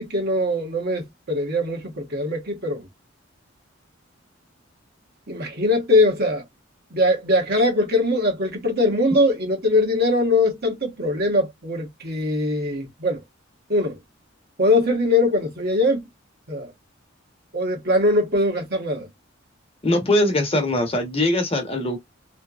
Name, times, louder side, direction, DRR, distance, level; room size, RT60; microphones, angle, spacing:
voice 1, 0.0-2.9 5.3-6.4 6.9-13.2 13.7-14.0 14.6-16.1 16.5-16.7 17.5-19.1, left 1 dB, 55° right, 1.5 m, -21 dB
voice 2, 19.8-22.0, left 1 dB, 30° left, 1.1 m, -21 dB
3.4 x 2.9 x 2.4 m
head